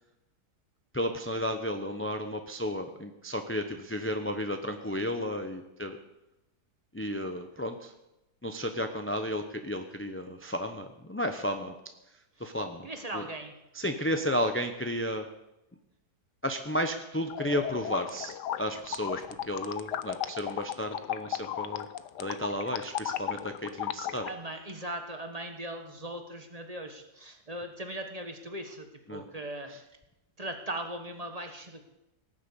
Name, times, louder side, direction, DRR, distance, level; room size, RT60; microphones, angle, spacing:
voice 1, 0.9-6.0 6.9-7.9 8.4-11.7 12.4-12.9 13.1-13.2 13.7-15.2 16.4-21.9 22.2-24.3 29.1-29.2, equal, 15° left, 6 dB, 0.5 m, -33 dB
voice 2, 12.8-13.5 24.3-29.7 30.4-32.0, right 1 dB, 25° right, 5 dB, 1.5 m, -39 dB
sound 1, 17.3-24.3, left 11 dB, 85° left, 1.4 m, -35 dB
18.5 x 7.5 x 8.4 m, 0.92 s
omnidirectional pair, 1.7 m